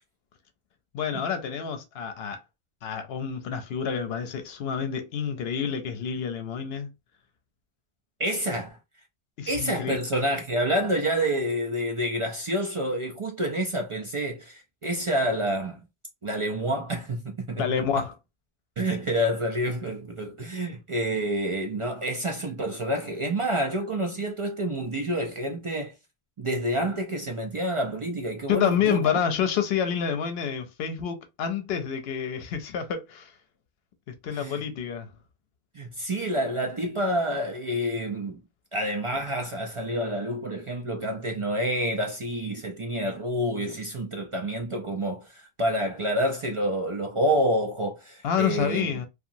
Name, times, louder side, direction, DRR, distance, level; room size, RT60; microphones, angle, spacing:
voice 1, 0.9-2.4 2.8-6.9 9.4-10.0 17.6-18.1 28.5-33.3 34.2-35.1 48.2-49.1, left 7 dB, 80° left, 0.8 m, -28 dB
voice 2, 8.2-8.8 9.5-15.8 16.2-17.8 18.8-25.9 26.4-29.1 34.3-34.6 35.7-38.4 38.7-48.9, right 1 dB, 50° right, 0.3 m, -28 dB
2.8 x 2.3 x 2.5 m
omnidirectional pair, 1.0 m